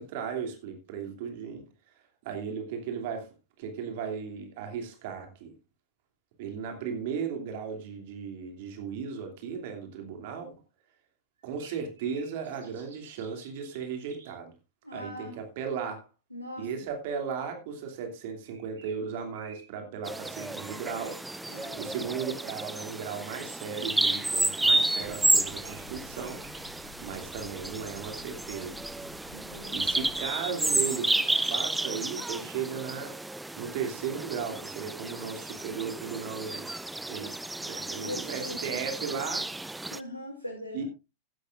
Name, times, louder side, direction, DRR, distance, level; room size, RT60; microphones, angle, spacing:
voice 1, 0.0-1.7 2.2-5.5 6.4-10.5 11.4-14.5 14.9-16.1 16.6-21.2 21.8-26.4 27.0-28.8 29.7-31.2 31.5-33.2 33.6-36.7 37.1-39.5 40.7-40.8, right 6 dB, 50° right, 2.8 m, -36 dB
sound 1, 11.4-14.3 18.4-19.6 20.4-22.1 25.3-26.9, right 4 dB, 65° right, 4.1 m, -55 dB
voice 2, 14.8-15.4 16.3-16.7 21.5-22.0 29.3-29.9 37.9-38.7 39.9-40.8, left 1 dB, 90° left, 2.8 m, -41 dB
Bird vocalization bird call bird song, 20.1-40.0, right 2 dB, 5° right, 0.5 m, -31 dB
sound 2, 25.0-30.3, left 4 dB, 60° left, 2.4 m, -51 dB
16.0 x 11.5 x 2.5 m
figure-of-eight pair, 90°, 0 cm